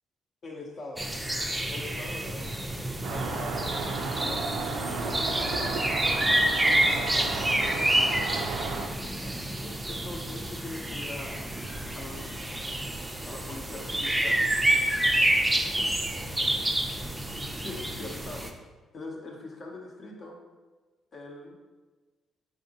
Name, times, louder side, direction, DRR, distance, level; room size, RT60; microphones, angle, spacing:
voice 1, 0.4-1.1 1.7-4.4 4.9-8.2 9.6-11.5 11.9-12.5 13.3-15.3 16.0-16.6 17.4-18.5 18.9-20.4 21.1-21.6, left 2 dB, 50° left, -1 dB, 0.6 m, -43 dB
sound 1, 1.0-18.5, right 1 dB, 10° right, 0.4 m, -28 dB
Traffic noise roadway noise, 3.0-8.9, right 4 dB, 85° right, 0.3 m, -33 dB
3.6 x 3.4 x 2.7 m, 1.3 s
cardioid pair, 90°, 0 cm